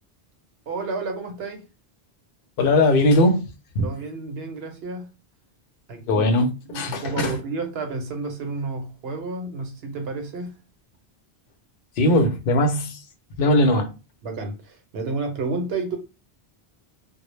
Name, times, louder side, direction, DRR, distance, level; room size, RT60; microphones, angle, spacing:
voice 1, 0.7-1.7 3.8-5.1 5.9-6.2 6.7-10.6 13.4-13.5 14.2-16.0, right 3 dB, 75° right, 0.9 m, -31 dB
voice 2, 2.6-3.5 3.7-3.9 6.1-7.4 12.0-13.0 13.4-13.9, left 1 dB, 60° left, 0.7 m, -19 dB
2.1 x 2.0 x 3.0 m
omnidirectional pair, 1.1 m